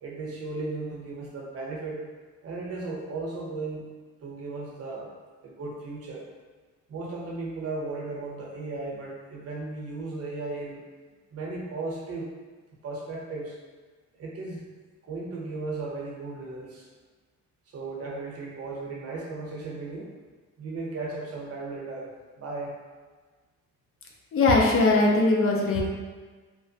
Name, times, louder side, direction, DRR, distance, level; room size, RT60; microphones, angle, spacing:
voice 1, 0.0-2.0 2.4-3.8 4.2-5.1 5.4-6.3 6.9-10.8 11.3-12.3 12.8-13.6 14.1-14.6 15.0-16.9 17.7-20.1 20.6-22.1 22.4-22.8, right 3 dB, 55° right, -3 dB, 0.8 m, -35 dB
voice 2, 24.3-25.8, left 2 dB, 45° left, -1 dB, 0.5 m, -20 dB
2.8 x 2.1 x 2.7 m, 1.4 s
cardioid pair, 90°, 30 cm